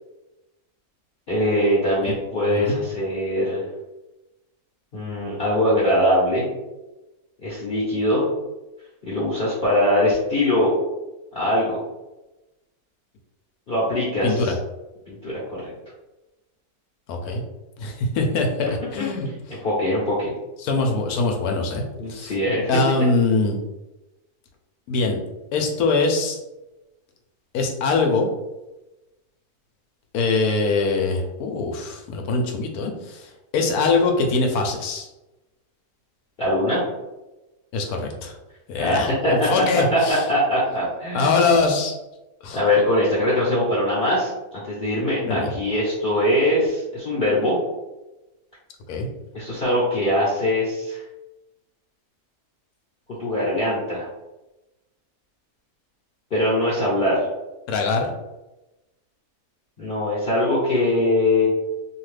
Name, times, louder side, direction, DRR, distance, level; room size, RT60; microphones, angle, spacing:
voice 1, 1.3-3.6 4.9-6.5 7.4-8.3 9.0-10.7 11.3-11.8 13.7-14.5 15.1-15.7 19.0-19.1 19.5-20.3 22.0-22.7 36.4-36.8 38.8-39.5 39.9-41.5 42.5-47.6 49.3-51.0 53.2-54.1 56.3-57.3 59.8-61.5, left 1 dB, 45° left, -7 dB, 0.8 m, -22 dB
voice 2, 2.4-2.8 14.2-14.5 17.1-17.4 17.8-19.3 20.6-21.8 22.1-22.3 22.7-23.6 24.9-25.2 25.5-26.4 27.5-28.3 30.1-35.1 37.7-38.3 38.7-40.2 41.1-41.9 42.4-42.6 45.2-45.5 48.9-49.1 57.7-58.1, left 3 dB, 75° left, 3 dB, 1.1 m, -23 dB
2.8 x 2.4 x 3.2 m, 1.0 s
omnidirectional pair, 1.6 m